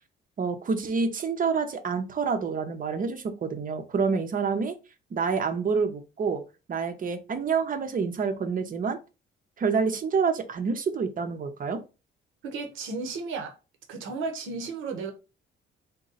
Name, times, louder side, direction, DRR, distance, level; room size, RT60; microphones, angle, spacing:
voice 1, 0.4-4.8 5.1-6.4 6.7-9.0 9.6-11.8, right 5 dB, 45° right, 0.7 m, -27 dB
voice 2, 12.4-13.5 13.9-15.1, right 4 dB, 85° right, 0.9 m, -33 dB
4.0 x 2.2 x 3.9 m
cardioid pair, 90°, 20 cm